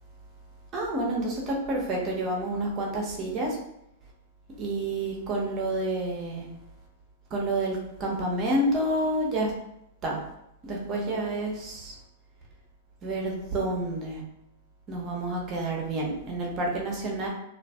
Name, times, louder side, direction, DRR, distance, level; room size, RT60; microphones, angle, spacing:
voice 1, 0.7-3.6 4.6-6.5 7.3-9.5 10.0-10.2 10.6-11.9 13.0-14.2 14.9-17.3, right 1 dB, 30° right, -2 dB, 0.7 m, -29 dB
2.5 x 2.4 x 2.3 m, 0.80 s
hypercardioid pair, 115°, 0 cm